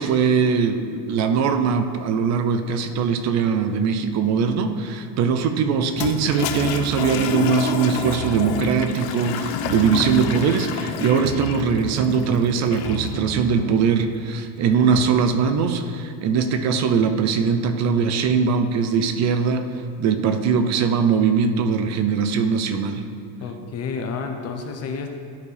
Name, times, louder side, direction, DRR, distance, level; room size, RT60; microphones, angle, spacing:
voice 1, 0.0-19.7 20.0-23.0, right 6 dB, 35° right, 8 dB, 0.4 m, -21 dB
Toilet flush, 5.9-13.1, left 7 dB, 75° left, 0.7 m, -29 dB
sound 1, 6.4-7.6 7.9-9.2 9.5-10.8 11.1-13.9, right 3 dB, 85° right, 1.3 m, -33 dB
voice 2, 23.4-25.1, left 5 dB, 30° left, 4 dB, 0.7 m, -30 dB
12.5 x 4.5 x 3.3 m, 2.3 s
cardioid pair, 150°, 49 cm